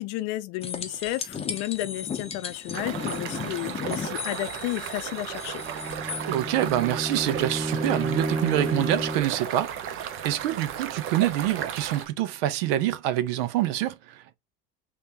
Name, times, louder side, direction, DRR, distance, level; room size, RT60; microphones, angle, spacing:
voice 1, 0.0-5.6, left 17 dB, 60° left, 0.5 m, -32 dB
sound 1, 0.6-6.3 9.2-9.3, left 6 dB, 20° left, 0.6 m, -36 dB
sound 2, 2.7-12.1, right 9 dB, 45° right, 0.7 m, -35 dB
Bowed string instrument, 5.5-9.4, right 1 dB, 20° right, 1.4 m, -31 dB
voice 2, 6.2-14.4, right 13 dB, 80° right, 0.6 m, -26 dB
3.4 x 2.6 x 3.4 m
supercardioid pair, 120°, 29 cm